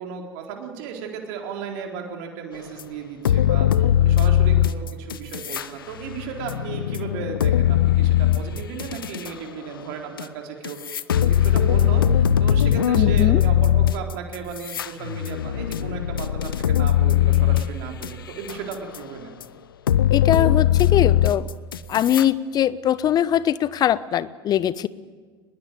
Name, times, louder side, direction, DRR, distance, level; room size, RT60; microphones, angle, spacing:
voice 1, 0.0-19.3, right 6 dB, 55° right, 2 dB, 4.1 m, -35 dB
sound 1, 2.8-2.9 3.2-5.7 6.0-9.3 10.2-10.3 10.6-18.1 18.5-19.0 19.4-19.5 19.9-22.2, left 10 dB, 70° left, 0.8 m, -20 dB
voice 2, 13.0-13.4 20.1-21.5 21.9-24.9, left 10 dB, 35° left, 17 dB, 0.9 m, -21 dB
23.0 x 21.0 x 9.2 m, 1.5 s
figure-of-eight pair, 80°, 12 cm